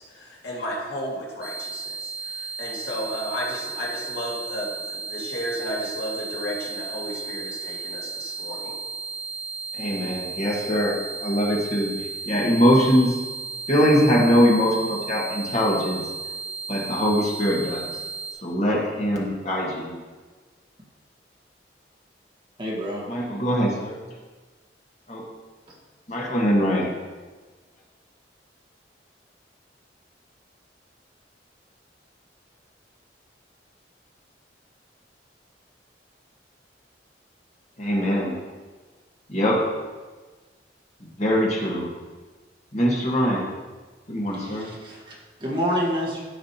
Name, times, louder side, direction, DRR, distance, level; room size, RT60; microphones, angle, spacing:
voice 1, 0.1-8.7, equal, 70° left, -4 dB, 2.1 m, -33 dB
sound 1, 1.4-18.3, right 4 dB, 5° right, 1.1 m, -34 dB
voice 2, 9.8-11.9 12.3-13.2 13.7-16.0 16.7-17.9 18.4-20.0 23.1-24.0 25.1-25.2 26.1-27.0 37.8-38.4 39.3-39.7 41.2-41.9 42.7-43.5 44.1-44.7, equal, 40° left, -3 dB, 1.7 m, -22 dB
voice 3, 22.6-23.1 44.3-46.2, equal, 30° right, -4 dB, 1.6 m, -28 dB
13.5 x 5.1 x 2.9 m, 1.4 s
head